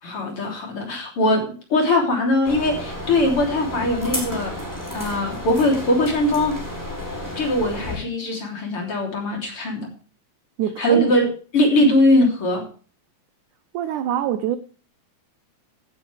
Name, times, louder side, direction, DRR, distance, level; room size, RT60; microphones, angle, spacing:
voice 1, 0.0-4.5 4.9-6.6 7.4-9.9 10.8-11.3 11.5-12.7, left 1 dB, 35° left, 3.9 m, -21 dB
sound 1, 2.4-8.0, left 1 dB, 5° left, 4.4 m, -32 dB
voice 2, 10.6-11.1 13.7-14.6, right 11 dB, 80° right, 1.8 m, -24 dB
16.0 x 9.8 x 3.4 m
omnidirectional pair, 4.3 m